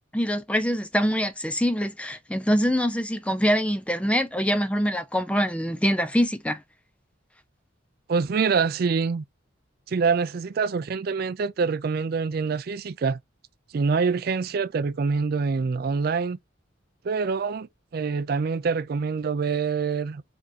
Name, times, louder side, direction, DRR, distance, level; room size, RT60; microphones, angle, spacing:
voice 1, 0.1-6.6, equal, 5° left, 0.5 m, -24 dB
voice 2, 8.1-9.2 9.9-13.2 13.7-16.4 17.0-20.3, right 5 dB, 50° right, 0.4 m, -25 dB
5.2 x 3.6 x 2.7 m
head